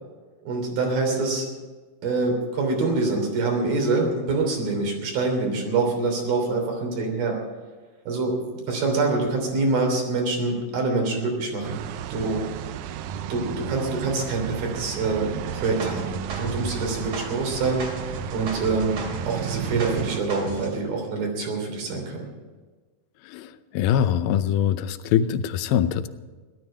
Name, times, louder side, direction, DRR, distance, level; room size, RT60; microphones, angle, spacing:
voice 1, 0.4-1.5 2.0-7.4 8.1-11.8 12.1-12.4 13.3-19.0 19.3-22.3, right 3 dB, 75° right, 1 dB, 5.0 m, -25 dB
sound 1, 11.6-20.2, right 10 dB, 90° right, 1.7 m, -33 dB
sound 2, 15.5-20.8, right 3 dB, 45° right, 2.9 m, -36 dB
voice 2, 23.2-26.1, left 9 dB, 80° left, 12 dB, 2.5 m, -23 dB
16.5 x 12.5 x 5.6 m, 1.4 s
omnidirectional pair, 4.3 m